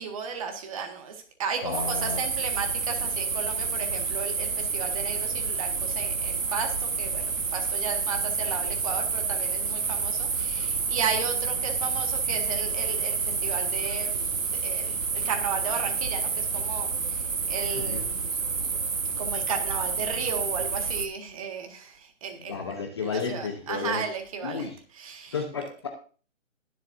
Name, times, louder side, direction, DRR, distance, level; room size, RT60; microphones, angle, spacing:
voice 1, 0.0-18.2 19.2-22.6 23.0-25.4, right 6 dB, 25° right, 4 dB, 1.7 m, -35 dB
voice 2, 1.6-2.2 17.8-18.0 22.5-24.0 24.4-24.8 25.3-25.9, left 5 dB, 20° left, 3 dB, 0.8 m, -32 dB
sound 1, 1.7-21.1, right 5 dB, 75° right, 1.5 m, -29 dB
21.5 x 7.6 x 2.6 m, 0.39 s
figure-of-eight pair, 155°, 39 cm